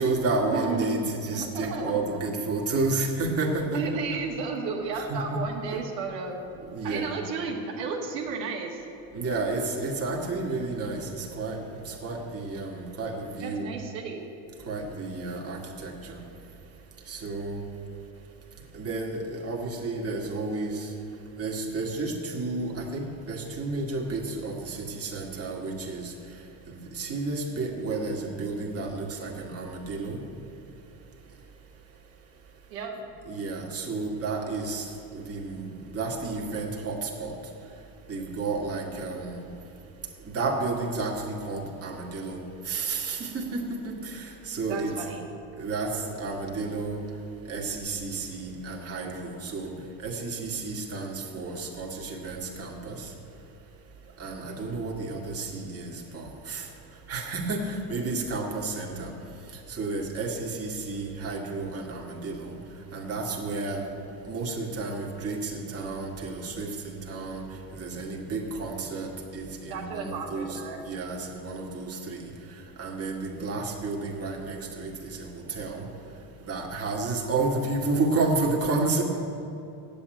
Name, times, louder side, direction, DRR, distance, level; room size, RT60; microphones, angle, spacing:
voice 1, 0.0-4.0 5.0-5.4 6.5-7.2 9.1-11.6 11.9-13.7 14.7-16.2 17.1-17.6 18.7-20.9 21.4-26.1 26.7-30.2 33.3-34.9 35.3-37.3 38.1-39.4 40.3-42.4 42.7-44.9 45.6-47.0 47.5-49.7 50.0-53.1 54.2-56.7 57.1-59.1 59.7-62.5 62.9-63.8 64.2-67.4 67.7-72.3 72.8-75.8 76.4-79.0, right 3 dB, 30° right, -1 dB, 2.1 m, -31 dB
voice 2, 0.5-0.8 1.3-2.2 3.7-6.3 6.8-8.8 13.4-14.3 32.7-33.0 44.7-45.3 69.7-70.8, right 5 dB, 85° right, 0 dB, 1.8 m, -33 dB
8.7 x 7.8 x 9.1 m, 2.8 s
supercardioid pair, 90°, 48 cm